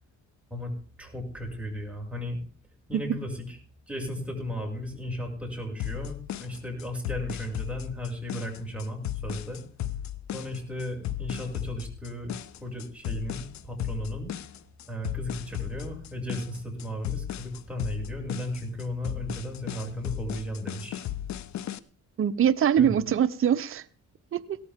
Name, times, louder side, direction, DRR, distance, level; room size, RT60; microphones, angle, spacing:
voice 1, 1.0-2.4 2.9-3.6 3.9-9.6 10.3-14.3 14.9-21.0 22.8-22.9, equal, 5° right, 0 dB, 6.5 m, -35 dB
sound 1, 5.8-21.8, left 11 dB, 65° left, 0.8 m, -35 dB
voice 2, 22.2-23.8 24.3-24.6, right 9 dB, 45° right, 10 dB, 0.8 m, -23 dB
17.5 x 13.5 x 3.7 m, 0.41 s
cardioid pair, 90°, 30 cm